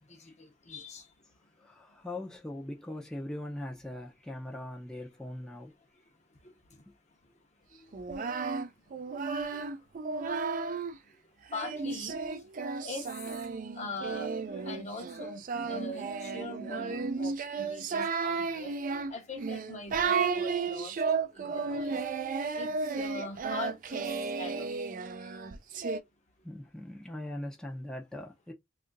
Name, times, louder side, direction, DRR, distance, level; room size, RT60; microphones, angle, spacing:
voice 1, 0.1-1.1 9.1-9.2 9.5-9.6 11.5-12.2 12.8-13.3 13.7-18.7 19.1-22.0 22.4-24.0 24.4-24.7, left 2 dB, 40° left, 0.7 m, -42 dB
voice 2, 1.6-5.7 26.4-28.5, left 1 dB, 5° left, 0.5 m, -40 dB
Singing, 7.9-11.0 11.5-26.0, right 4 dB, 45° right, 0.4 m, -33 dB
2.7 x 2.4 x 3.8 m
head